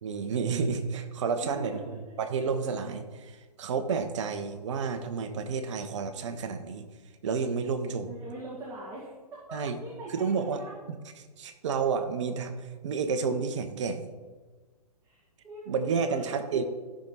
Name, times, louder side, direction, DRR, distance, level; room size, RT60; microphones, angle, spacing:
voice 1, 0.0-6.8 7.2-8.1 9.5-9.8 10.2-10.6 11.2-14.1 15.7-16.6, right 5 dB, 50° right, 8 dB, 1.3 m, -30 dB
voice 2, 1.4-2.0 8.0-10.8 15.0-15.2 15.4-15.7 16.0-16.4, right 2 dB, 15° right, -5 dB, 2.3 m, -42 dB
14.0 x 6.4 x 4.1 m, 1.4 s
figure-of-eight pair, 125°, 20 cm